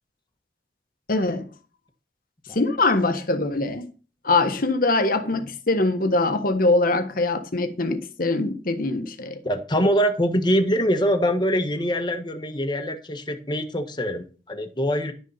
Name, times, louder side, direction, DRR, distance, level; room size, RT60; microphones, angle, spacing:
voice 1, 1.1-1.5 2.5-3.9 4.2-9.4, left 2 dB, 55° left, 1.3 m, -23 dB
voice 2, 9.4-15.1, equal, 25° left, 1.4 m, -24 dB
12.0 x 6.6 x 5.7 m
head